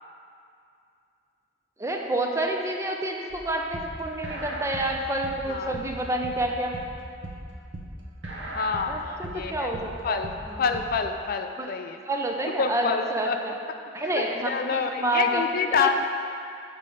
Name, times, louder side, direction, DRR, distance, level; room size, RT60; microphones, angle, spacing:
voice 1, 1.8-6.7 8.9-10.6 11.6-11.7 12.0-13.6 13.9-15.4 15.8-16.0, right 1 dB, 15° right, 1 dB, 0.6 m, -28 dB
sound 1, 3.3-11.0, right 1 dB, 70° right, 0.9 m, -38 dB
voice 2, 8.5-9.7 10.0-10.3 10.6-12.0 12.6-13.4 14.1-16.0, left 5 dB, 55° left, 6 dB, 0.4 m, -27 dB
7.5 x 4.9 x 5.2 m, 2.5 s
head